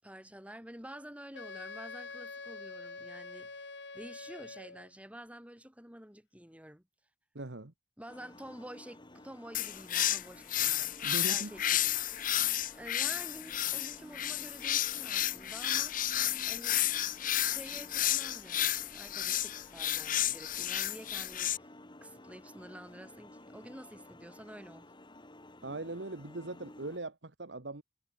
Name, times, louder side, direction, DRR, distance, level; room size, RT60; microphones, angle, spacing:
voice 1, 0.0-3.7 3.9-6.8 8.0-10.9 11.3-11.8 12.7-16.0 16.4-16.9 17.4-21.5 22.0-24.9, right 1 dB, 10° right, 7.6 m, -49 dB
Wind instrument woodwind instrument, 1.3-4.9, left 3 dB, 75° left, 6.5 m, -45 dB
voice 2, 7.3-7.7 11.0-11.6 25.6-27.8, right 2 dB, 85° right, 1.7 m, -40 dB
sound 1, 8.1-27.0, left 1 dB, 25° left, 3.3 m, -54 dB
sound 2, 9.5-21.6, left 12 dB, 50° left, 0.9 m, -32 dB
head